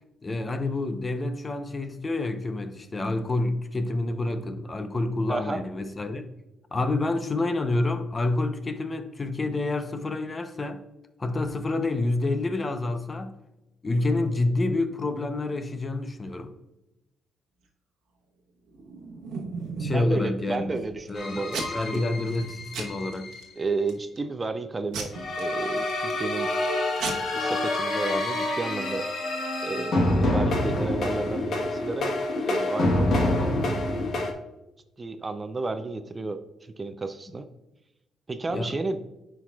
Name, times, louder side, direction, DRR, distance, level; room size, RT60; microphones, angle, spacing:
voice 1, 0.2-6.3 6.7-10.8 11.2-13.3 13.8-16.5 19.8-20.7 21.1-21.4 21.7-23.3 38.5-38.7, left 2 dB, 30° left, 0.7 m, -28 dB
voice 2, 5.3-5.6 19.9-22.0 23.6-25.1 25.4-26.5 27.3-29.1 29.6-32.2 32.5-33.1 35.0-37.5 38.3-39.0, right 3 dB, 25° right, 0.5 m, -32 dB
Packing tape duct tape / Tearing, 18.7-20.1 20.6-21.1 21.5-22.0 22.3-22.5 22.7-23.4 23.9-24.3 24.9-26.2 26.7-26.8 27.0-27.1, right 4 dB, 80° right, 1.0 m, -35 dB
sound 1, 21.2-23.4 25.1-34.3, left 1 dB, 60° left, 1.2 m, -27 dB
9.5 x 4.7 x 2.3 m
cardioid pair, 90°, 0 cm